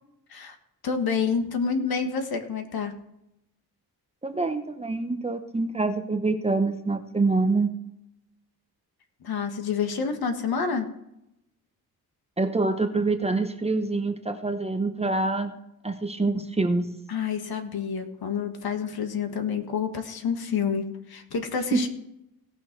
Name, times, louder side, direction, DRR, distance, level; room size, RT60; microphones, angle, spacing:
voice 1, 0.8-3.0 9.2-10.9 17.1-21.9, left 6 dB, 65° left, 6 dB, 1.6 m, -28 dB
voice 2, 4.2-7.7 12.4-15.5 15.8-16.9 21.7-21.8, right 3 dB, 15° right, 7 dB, 0.8 m, -25 dB
17.5 x 6.3 x 4.6 m, 0.83 s
wide cardioid pair, 135°, 39 cm